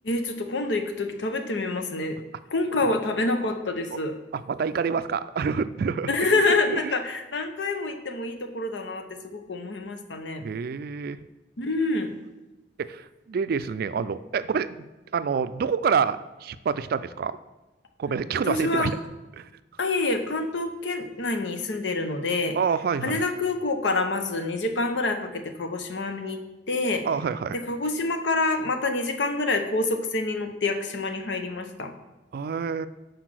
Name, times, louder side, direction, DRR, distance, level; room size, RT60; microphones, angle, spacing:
voice 1, 0.0-2.2 2.5-4.1 6.1-10.5 11.6-12.1 18.5-18.9 19.8-22.6 23.0-26.4 26.7-27.1 27.5-31.9, left 2 dB, 85° left, 6 dB, 0.8 m, -27 dB
voice 2, 4.3-6.3 6.7-6.8 10.4-11.2 12.8-14.8 15.1-17.4 18.0-18.9 19.4-19.5 22.5-23.2 27.0-27.6 32.3-32.9, right 6 dB, 55° right, 14 dB, 0.3 m, -27 dB
6.0 x 5.0 x 6.1 m, 1.1 s
head